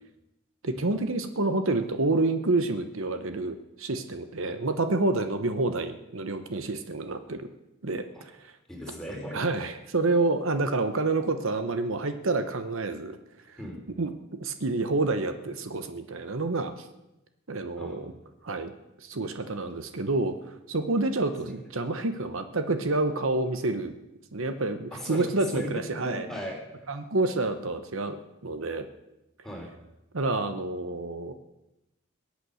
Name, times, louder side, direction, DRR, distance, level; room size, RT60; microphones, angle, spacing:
voice 1, 0.6-7.5 7.8-8.5 9.3-13.2 13.5-13.6 14.0-14.1 14.4-16.9 17.5-18.1 18.4-18.7 19.0-20.3 20.7-23.9 24.3-26.3 26.9-28.2 28.4-28.8 30.1-31.3, right 2 dB, 65° right, 9 dB, 0.9 m, -28 dB
voice 2, 8.7-9.4 13.6-13.8 17.8-18.0 24.9-25.2 25.5-26.9 29.4-29.7, equal, ahead, -1 dB, 3.2 m, -37 dB
22.0 x 8.4 x 6.3 m, 0.94 s
head